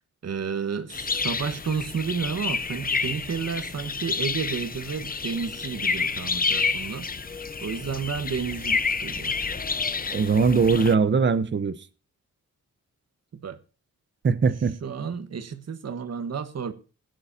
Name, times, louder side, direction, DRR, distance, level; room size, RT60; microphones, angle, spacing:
voice 1, 0.2-7.1 7.6-9.3 13.3-13.6 14.8-16.7, right 6 dB, 55° right, 1.3 m, -31 dB
sound 1, 0.9-10.9, left 5 dB, 30° left, 0.7 m, -29 dB
voice 2, 10.1-11.8 14.2-14.7, right 5 dB, 35° right, 0.9 m, -21 dB
20.0 x 9.7 x 2.7 m
wide cardioid pair, 120°, 31 cm